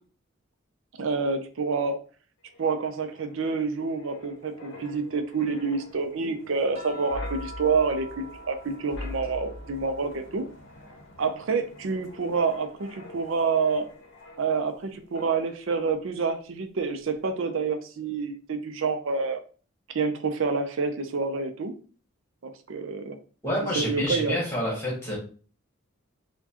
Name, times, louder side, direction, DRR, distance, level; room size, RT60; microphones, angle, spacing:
voice 1, 1.0-2.0 2.6-10.5 11.2-13.9 14.4-19.4 19.9-21.7 22.7-23.2 23.8-24.4, right 4 dB, 65° right, 7 dB, 0.5 m, -28 dB
Wind, 2.5-14.9 15.2-15.4, left 1 dB, 60° left, 0.7 m, -44 dB
sound 1, 6.7-11.2 11.6-13.2 14.7-14.9, right 2 dB, 30° right, 0.8 m, -47 dB
voice 2, 23.4-25.2, equal, 15° left, -4 dB, 1.6 m, -28 dB
4.5 x 2.2 x 2.8 m, 0.40 s
head